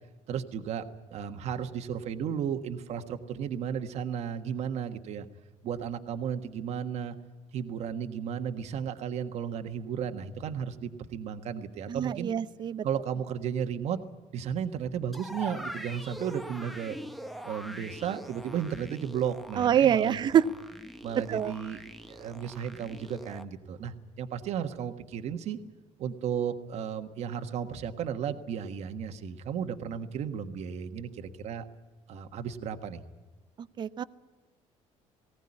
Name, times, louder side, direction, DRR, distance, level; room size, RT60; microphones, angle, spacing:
voice 1, 0.3-5.3 5.6-7.2 7.5-12.3 12.8-14.0 14.3-17.0 17.4-20.4 21.0-21.8 22.1-25.6 26.0-31.6 32.1-33.0, right 8 dB, 55° right, 7 dB, 1.4 m, -34 dB
voice 2, 11.9-12.8 19.6-20.4 21.3-21.5 33.8-34.0, right 9 dB, 35° right, 14 dB, 0.6 m, -25 dB
sound 1, 15.1-23.4, equal, ahead, 0.9 m, -43 dB
19.5 x 18.0 x 9.8 m, 1.3 s
cardioid pair, 165°, 13 cm